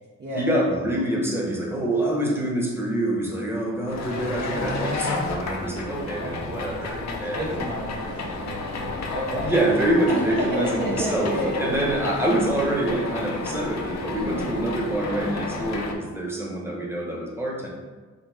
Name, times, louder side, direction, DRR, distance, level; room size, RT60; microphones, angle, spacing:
voice 1, 0.3-7.6 9.4-17.7, right 1 dB, 10° right, -3 dB, 1.0 m, -26 dB
sound 1, 3.9-15.9, left 3 dB, 60° left, 0.7 m, -32 dB
voice 2, 6.2-9.6 10.1-12.0 14.2-14.5, equal, 35° right, -4 dB, 0.7 m, -31 dB
4.1 x 2.8 x 3.4 m, 1.4 s
cardioid pair, 85°, 30 cm